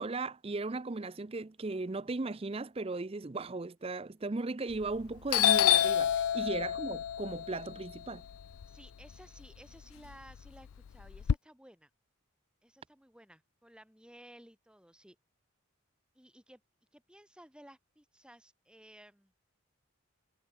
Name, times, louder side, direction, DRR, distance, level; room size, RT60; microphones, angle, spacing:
voice 1, 0.0-8.2, right 3 dB, 25° right, 0.5 m, -37 dB
Doorbell, 4.7-5.0 5.3-9.4 9.8-11.3, left 11 dB, 80° left, 0.4 m, -29 dB
voice 2, 8.6-11.9 12.6-15.2 16.1-16.6 16.9-19.3, right 1 dB, 5° right, 3.2 m, -56 dB
head